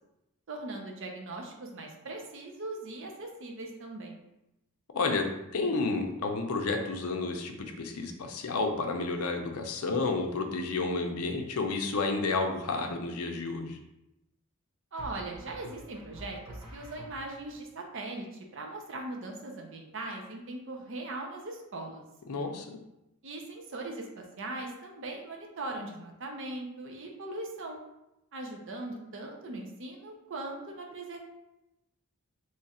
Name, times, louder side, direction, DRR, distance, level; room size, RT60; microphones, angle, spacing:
voice 1, 0.5-4.2 14.9-22.0 23.2-27.8 28.3-31.2, right 2 dB, 55° right, 1 dB, 0.6 m, -40 dB
voice 2, 4.9-5.3 5.5-13.8 22.3-22.8, left 3 dB, 75° left, 4 dB, 0.5 m, -31 dB
sound 1, 15.0-17.6, right 1 dB, 25° right, 0.9 m, -47 dB
3.1 x 2.4 x 4.1 m, 0.90 s
head